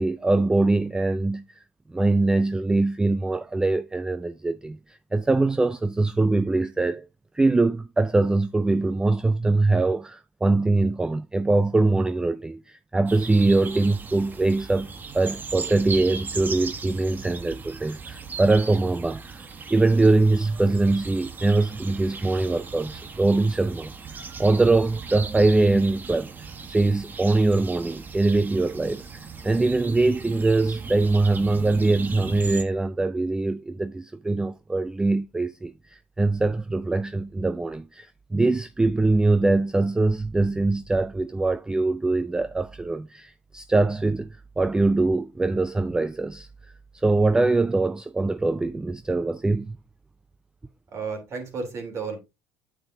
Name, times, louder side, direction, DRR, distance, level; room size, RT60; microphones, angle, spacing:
voice 1, 0.0-1.4 1.9-7.1 7.3-14.9 15.1-23.9 24.4-26.3 26.7-46.5 46.9-49.8, right 2 dB, 10° right, 0.4 m, -23 dB
sound 1, 13.1-32.6, right 5 dB, 30° right, 1.2 m, -38 dB
voice 2, 50.9-52.2, right 4 dB, 50° right, 3.2 m, -32 dB
8.7 x 7.3 x 2.6 m
supercardioid pair, 90°, 6 cm